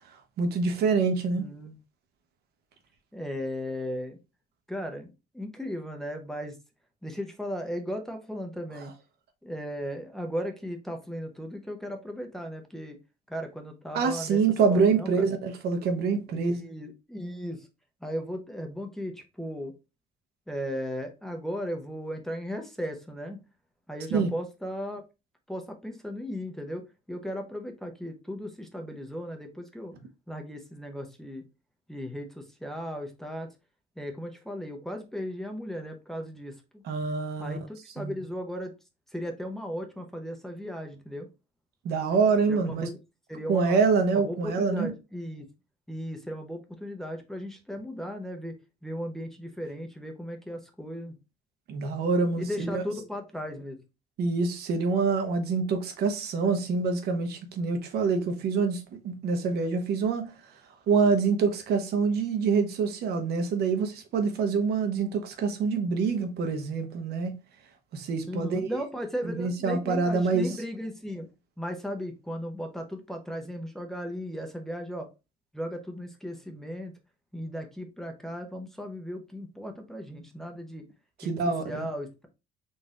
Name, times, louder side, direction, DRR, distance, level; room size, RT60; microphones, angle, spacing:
voice 1, 0.4-1.5 13.9-16.6 24.1-24.3 36.8-37.6 38.0-38.1 41.8-42.9 43.5-44.9 51.7-52.8 54.2-60.3 60.9-67.4 67.9-68.7 69.3-70.5 81.2-81.9, right 4 dB, 70° right, 0.9 m, -26 dB
voice 2, 1.4-1.8 3.1-4.2 4.7-6.6 7.0-8.9 9.4-13.0 13.3-14.4 14.7-15.3 16.3-17.7 18.0-19.8 20.5-23.4 23.9-25.0 25.5-30.0 30.3-31.4 31.9-33.5 34.0-36.8 37.4-38.7 39.1-41.3 42.5-43.0 43.3-43.8 44.1-45.5 45.9-51.1 52.4-53.8 68.3-71.3 71.6-75.1 75.5-76.9 77.3-80.9 81.2-81.3 81.6-82.3, equal, ahead, 0.8 m, -36 dB
3.9 x 2.6 x 3.6 m
cardioid pair, 110°, 17 cm